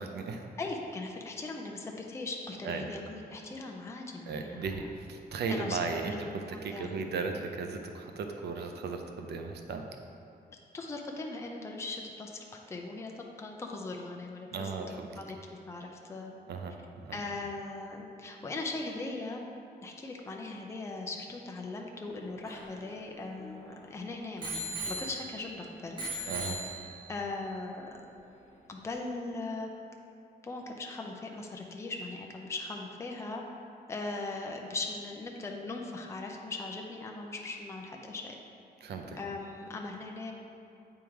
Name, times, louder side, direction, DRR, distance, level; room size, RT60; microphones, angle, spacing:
voice 1, 0.0-0.4 2.6-2.8 4.3-9.9 14.5-15.1 16.5-17.2 26.3-26.6 38.8-39.2, right 4 dB, 90° right, 4 dB, 0.5 m, -36 dB
voice 2, 0.6-4.9 5.5-6.2 6.5-7.0 10.7-14.8 15.1-16.3 17.1-19.5 19.8-26.0 27.1-27.9 28.7-29.7 30.4-33.4 33.9-38.4 39.2-40.3, left 3 dB, 15° left, 1 dB, 0.5 m, -39 dB
Bicycle bell, 22.1-23.8 24.4-25.6 26.0-27.2 28.0-28.1, right 1 dB, 30° right, 1.1 m, -39 dB
8.2 x 3.6 x 4.7 m, 2.6 s
wide cardioid pair, 160°, 17 cm